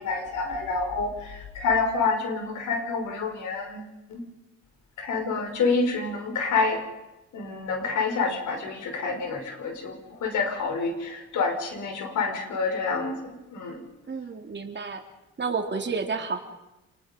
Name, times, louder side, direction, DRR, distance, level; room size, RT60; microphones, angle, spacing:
voice 1, 0.0-4.2 5.0-6.8 7.3-13.8, left 4 dB, 75° left, 4 dB, 5.4 m, -28 dB
voice 2, 14.1-15.0 15.4-16.4, right 4 dB, 35° right, 4 dB, 3.2 m, -30 dB
28.5 x 20.0 x 5.3 m, 1.0 s
cardioid pair, 90°, 30 cm